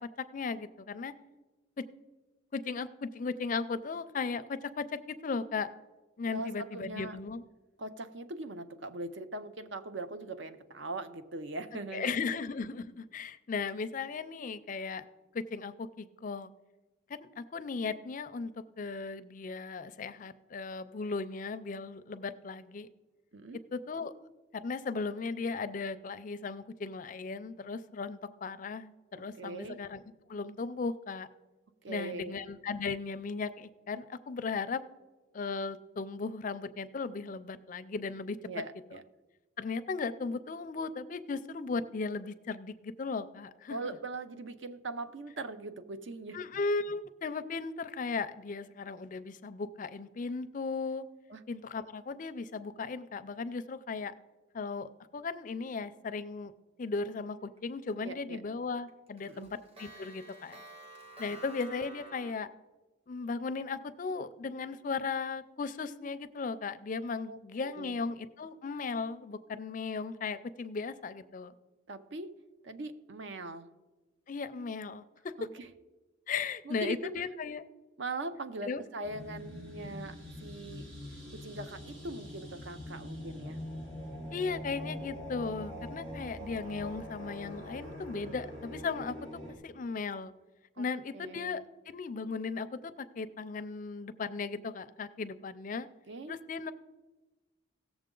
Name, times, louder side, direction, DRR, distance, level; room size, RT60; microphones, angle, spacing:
voice 1, 0.3-1.1 1.8-1.9 2.5-5.7 6.2-7.4 11.9-15.1 15.3-16.5 17.1-18.5 18.8-22.9 23.7-24.1 24.5-30.0 30.3-31.3 31.9-34.8 35.3-38.4 39.6-43.8 46.3-51.0 51.5-54.1 54.5-56.5 56.8-60.6 61.2-62.5 63.1-71.5 74.3-75.3 76.3-77.6 78.7-78.8 84.3-89.2 89.6-90.3 90.8-95.9 96.3-96.7, left 4 dB, 40° left, 13 dB, 0.4 m, -36 dB
voice 2, 6.3-7.2 7.8-12.2 23.3-23.6 29.4-29.8 31.8-32.4 38.5-39.0 43.7-46.4 51.3-51.4 58.0-58.4 59.2-59.5 67.3-68.0 71.9-72.3 72.6-73.7 75.4-75.7 76.7-77.1 78.0-80.9 81.3-83.6 90.8-90.9 91.1-91.6 96.1-96.4, right 2 dB, 65° right, 11 dB, 0.6 m, -41 dB
Clock, 57.6-58.1 58.4-58.5 58.9-62.3, right 1 dB, 30° right, 1.1 m, -50 dB
sound 1, 79.0-89.5, equal, 90° right, 3.3 m, -43 dB
17.0 x 7.1 x 3.8 m, 1.2 s
head